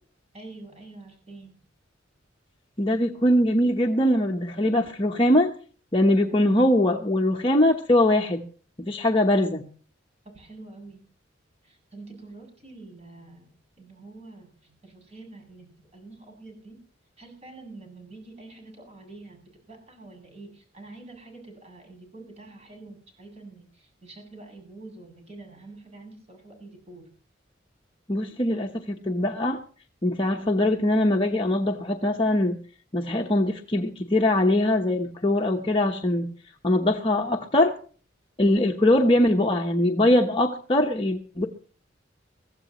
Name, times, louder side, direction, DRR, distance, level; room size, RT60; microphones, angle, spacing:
voice 1, 0.3-1.6 10.3-11.0 11.6-13.5 13.8-16.8 17.2-27.1, right 2 dB, 35° right, 2 dB, 7.6 m, -46 dB
voice 2, 2.8-5.5 5.9-8.4 8.8-9.6 28.1-29.6 30.0-32.6 32.9-36.3 36.6-37.7 38.4-41.5, left 1 dB, 30° left, 1 dB, 1.1 m, -22 dB
23.0 x 15.0 x 3.1 m, 0.40 s
head